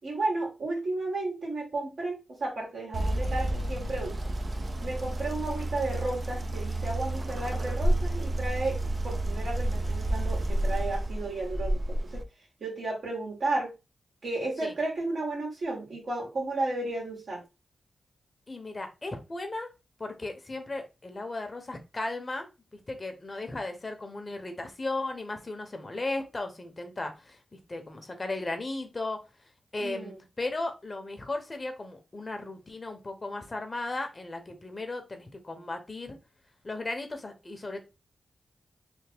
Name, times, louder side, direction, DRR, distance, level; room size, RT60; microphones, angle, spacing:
voice 1, 0.0-4.2 4.8-12.2 12.6-13.7 14.2-17.4 29.8-30.2, right 2 dB, 70° right, -2 dB, 1.7 m, -33 dB
sound 1, 2.9-12.2, right 1 dB, 45° right, 0.6 m, -30 dB
voice 2, 18.5-19.7 20.0-22.5 22.7-29.2 29.7-36.2 36.6-37.8, left 2 dB, 35° left, 5 dB, 0.8 m, -36 dB
3.4 x 2.1 x 3.4 m, 0.27 s
cardioid pair, 60°, 0 cm